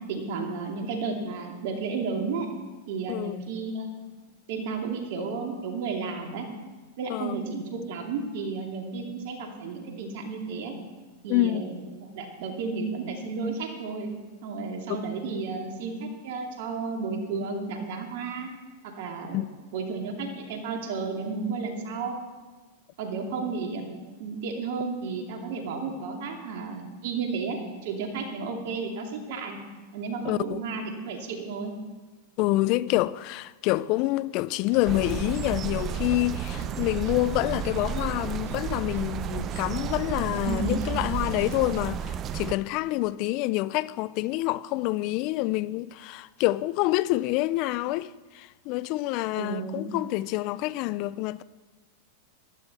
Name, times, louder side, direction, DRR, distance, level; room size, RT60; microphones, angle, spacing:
voice 1, 0.1-2.5 2.9-3.9 4.5-6.5 7.0-10.7 11.2-14.1 14.4-18.5 18.8-19.4 19.7-22.2 23.0-23.8 24.2-29.6 29.9-31.7 40.5-40.9 49.4-49.8, right 4 dB, 65° right, 2.5 m, -32 dB
voice 2, 11.3-11.6 19.3-19.5 30.2-30.6 32.4-51.4, left 17 dB, 50° left, 0.4 m, -27 dB
sound 1, 34.7-41.8, right 4 dB, 85° right, 1.8 m, -45 dB
sound 2, 34.8-42.5, right 8 dB, 35° right, 0.5 m, -32 dB
14.5 x 12.0 x 4.1 m
hypercardioid pair, 110°, 0 cm